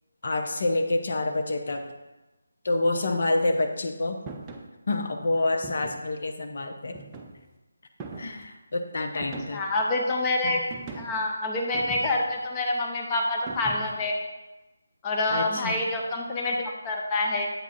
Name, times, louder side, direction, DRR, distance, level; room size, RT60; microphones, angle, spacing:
voice 1, 0.2-1.8 2.6-4.2 4.9-7.0 8.2-9.6 10.4-10.6 15.3-15.8, left 2 dB, 55° left, 4 dB, 0.7 m, -27 dB
sound 1, 4.3-4.7 5.6-6.1 6.9-7.5 8.0-8.5 9.2-9.8 10.7-11.2 11.7-12.4 13.5-14.1, right 3 dB, 15° right, 0.6 m, -40 dB
voice 2, 9.5-10.6 10.9-14.2 15.0-17.5, left 2 dB, 20° left, 1 dB, 0.8 m, -27 dB
8.1 x 3.6 x 5.9 m, 1.1 s
figure-of-eight pair, 160°, 0 cm